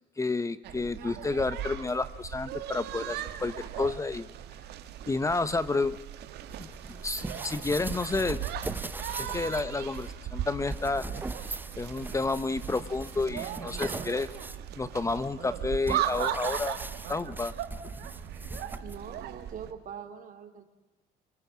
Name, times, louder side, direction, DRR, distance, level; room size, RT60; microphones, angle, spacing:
voice 1, 0.2-4.3 5.1-6.0 6.6-8.4 9.2-11.1 11.8-14.3 14.7-16.8 17.1-17.5, left 3 dB, 20° left, 14 dB, 1.0 m, -30 dB
sound 1, 0.6-19.7, right 11 dB, 80° right, 2.2 m, -38 dB
sound 2, 6.5-19.2, right 2 dB, 10° right, 0.7 m, -40 dB
voice 2, 18.8-20.6, right 8 dB, 55° right, 6 dB, 3.5 m, -43 dB
27.0 x 24.5 x 7.6 m, 1.2 s
cardioid pair, 110°, 17 cm